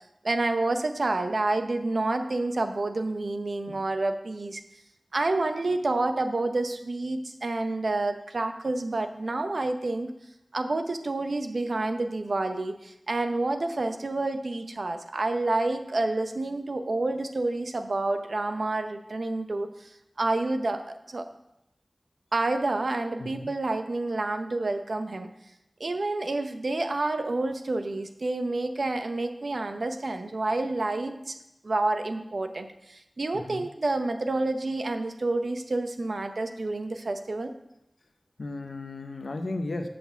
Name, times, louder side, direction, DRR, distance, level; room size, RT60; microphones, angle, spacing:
voice 1, 0.2-4.6 5.1-10.1 10.5-19.9 20.2-21.3 22.3-25.3 25.8-31.3 31.6-37.5, right 2 dB, 75° right, 7 dB, 0.7 m, -29 dB
voice 2, 38.4-39.9, left 2 dB, 85° left, 6 dB, 0.7 m, -34 dB
7.6 x 4.3 x 6.8 m, 0.85 s
wide cardioid pair, 50°, 0 cm